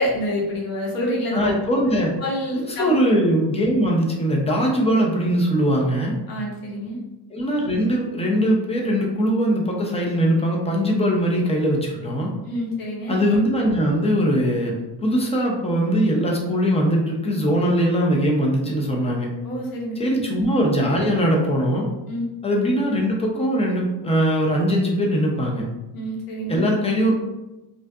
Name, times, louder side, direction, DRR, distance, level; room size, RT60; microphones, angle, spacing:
voice 1, 0.0-1.5 2.2-2.9 6.3-7.0 12.5-13.2 19.4-20.2 22.1-22.2 25.9-26.7, equal, 55° left, -2 dB, 0.8 m, -27 dB
voice 2, 1.3-2.1 2.5-6.2 7.3-12.3 13.1-19.3 20.0-21.8 22.4-25.7 26.5-27.1, equal, 15° left, -1 dB, 0.3 m, -21 dB
2.6 x 2.3 x 2.2 m, 1.0 s
cardioid pair, 145°, 42 cm